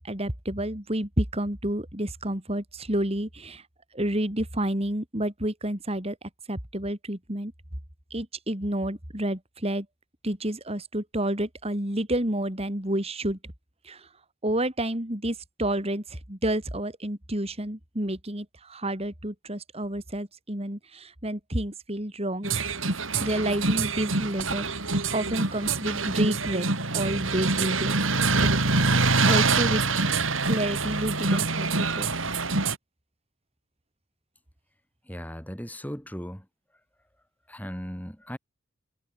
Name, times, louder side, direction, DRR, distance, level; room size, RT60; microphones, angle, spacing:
voice 1, 0.0-3.6 3.9-6.2 6.5-7.5 8.1-9.9 10.2-13.4 13.8-14.1 14.4-22.7 23.2-24.7 25.1-26.7 26.9-28.5 29.3-29.8 30.5-32.1, right 1 dB, 30° right, 3.7 m, -30 dB
sound 1, 22.4-32.8, right 3 dB, 80° right, 5.5 m, -25 dB
voice 2, 35.1-36.5 37.5-38.4, equal, 10° left, 3.8 m, -37 dB
head